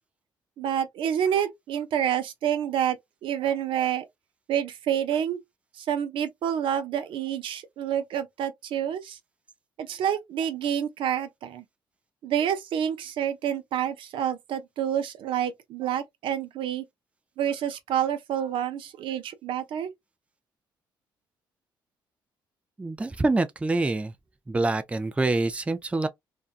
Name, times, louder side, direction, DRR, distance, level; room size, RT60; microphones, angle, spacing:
voice 1, 0.6-4.1 4.5-5.4 5.8-9.2 9.8-11.6 12.2-16.8 17.4-19.9, right 9 dB, 70° right, 0.5 m, -28 dB
voice 2, 22.8-24.1 24.5-26.1, right 2 dB, 15° right, 0.4 m, -26 dB
2.6 x 2.2 x 2.3 m
cardioid pair, 75°, 9 cm